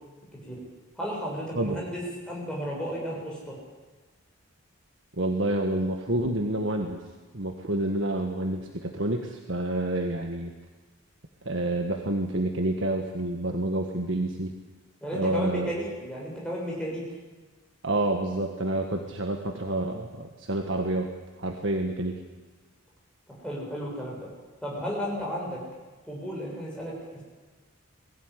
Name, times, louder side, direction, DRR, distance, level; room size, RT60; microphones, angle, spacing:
voice 1, 1.0-3.6 15.0-17.0 23.3-24.3 24.6-25.6 26.1-27.0, equal, 5° left, -4 dB, 6.9 m, -33 dB
voice 2, 5.2-7.0 7.3-10.5 11.4-14.5 15.1-15.7 17.8-21.1 21.4-22.2, right 1 dB, 60° right, 4 dB, 1.6 m, -28 dB
21.5 x 15.5 x 9.9 m, 1.3 s
head